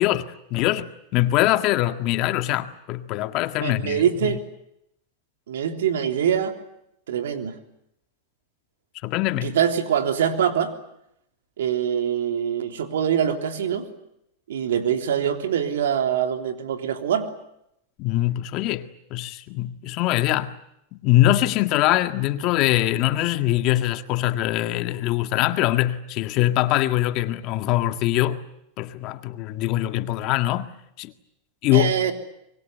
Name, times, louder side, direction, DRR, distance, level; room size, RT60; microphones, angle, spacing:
voice 1, 0.0-4.4 9.0-9.6 18.0-20.5 20.9-28.4 28.8-30.7 31.0-31.1 31.6-32.0, left 15 dB, 50° left, 1.8 m, -23 dB
voice 2, 3.6-4.4 5.5-6.5 7.1-7.6 9.4-10.7 11.6-13.9 14.5-17.3 31.7-32.1, right 9 dB, 90° right, 3.5 m, -24 dB
25.0 x 22.5 x 9.4 m
supercardioid pair, 125°, 0 cm